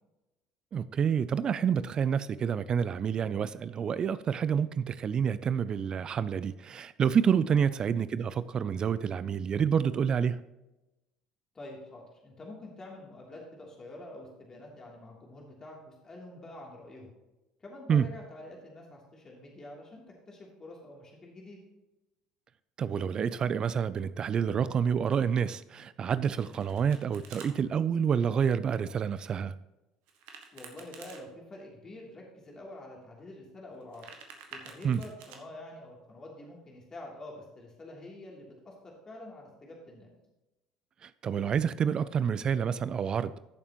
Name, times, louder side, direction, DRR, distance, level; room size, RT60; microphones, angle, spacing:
voice 1, 0.7-10.4 17.9-18.1 22.8-29.5 34.8-35.0 41.0-43.3, right 7 dB, 40° right, 0.4 m, -28 dB
voice 2, 11.5-17.1 17.6-21.6 30.5-34.1 34.5-40.1, left 1 dB, 30° left, 3.1 m, -47 dB
Domestic sounds home sounds, 26.1-27.5 30.1-31.2 33.7-35.4, right 6 dB, 65° right, 1.6 m, -49 dB
14.5 x 7.2 x 3.0 m
hypercardioid pair, 65°, 2 cm